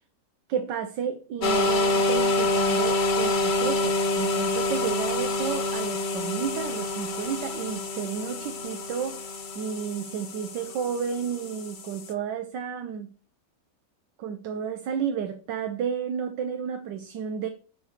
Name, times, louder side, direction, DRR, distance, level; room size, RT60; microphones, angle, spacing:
voice 1, 0.5-13.1 14.2-17.5, right 7 dB, 80° right, 1.4 m, -32 dB
sound 1, 1.4-12.1, left 2 dB, 75° left, 0.4 m, -27 dB
8.0 x 3.9 x 6.3 m
omnidirectional pair, 1.9 m